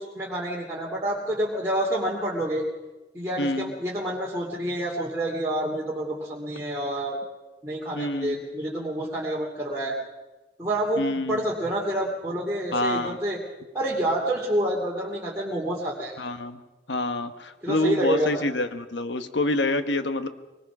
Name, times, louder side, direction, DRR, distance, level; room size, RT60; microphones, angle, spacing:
voice 1, 0.0-2.6 3.1-7.2 7.6-10.0 10.6-13.4 13.7-16.1 17.6-18.4, right 1 dB, 15° right, -6 dB, 2.7 m, -28 dB
voice 2, 3.4-3.7 7.9-8.4 11.0-11.4 12.7-13.2 16.2-16.6 16.9-20.3, left 1 dB, 80° left, 9 dB, 1.3 m, -27 dB
23.0 x 20.0 x 6.1 m, 1.1 s
head